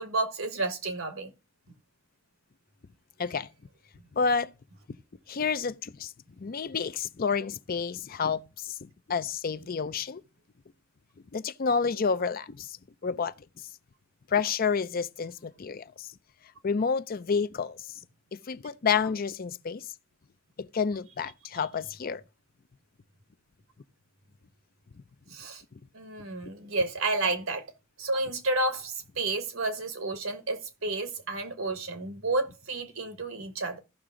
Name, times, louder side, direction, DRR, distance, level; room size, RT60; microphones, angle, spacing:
voice 1, 0.0-1.3 25.3-25.6 25.9-27.6 28.0-33.8, right 2 dB, 80° right, 1.6 m, -31 dB
voice 2, 4.1-4.5 5.3-6.1 6.4-10.2 11.3-12.8 13.0-13.3 14.3-16.1 16.6-17.8 18.3-19.9 20.6-22.2, left 5 dB, 45° left, 0.5 m, -29 dB
15.0 x 5.9 x 3.8 m
head